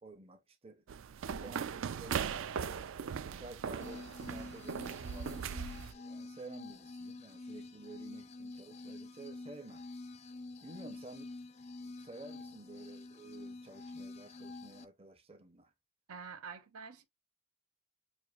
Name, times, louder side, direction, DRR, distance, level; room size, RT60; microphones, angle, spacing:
voice 1, 0.0-0.8 1.1-2.9 3.4-5.5 5.9-9.8 10.6-11.3 11.8-15.7, right 2 dB, 25° right, 0.7 m, -52 dB
sound 1, 0.9-5.9, right 7 dB, 60° right, 0.3 m, -39 dB
sound 2, 3.8-14.8, left 2 dB, 30° left, 0.4 m, -47 dB
voice 2, 16.1-17.0, right 6 dB, 80° right, 0.8 m, -47 dB
6.3 x 2.6 x 2.4 m
head